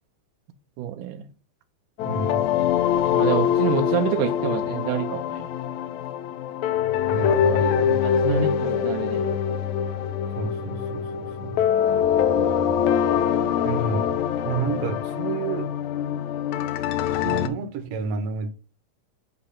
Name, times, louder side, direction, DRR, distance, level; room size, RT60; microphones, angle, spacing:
voice 1, 0.8-1.3 3.1-5.5 8.2-9.3, right 9 dB, 85° right, 2.2 m, -27 dB
sound 1, 2.0-17.5, left 9 dB, 80° left, 1.8 m, -24 dB
voice 2, 2.0-2.6 7.1-8.0 10.3-11.7 13.6-14.1 14.4-15.7 17.2-18.5, right 4 dB, 65° right, 1.7 m, -30 dB
8.3 x 2.9 x 5.6 m
omnidirectional pair, 3.6 m